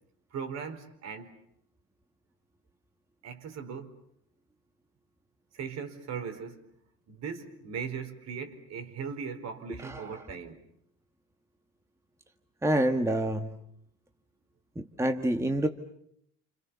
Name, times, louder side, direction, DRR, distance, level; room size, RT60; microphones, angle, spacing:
voice 1, 0.3-1.4 3.2-4.0 5.5-6.7 7.1-10.6, right 6 dB, 55° right, 4.6 m, -39 dB
voice 2, 9.7-10.2 12.6-13.5 14.8-15.7, right 1 dB, 10° right, 1.9 m, -28 dB
29.5 x 27.5 x 7.1 m
cardioid pair, 120°, 32 cm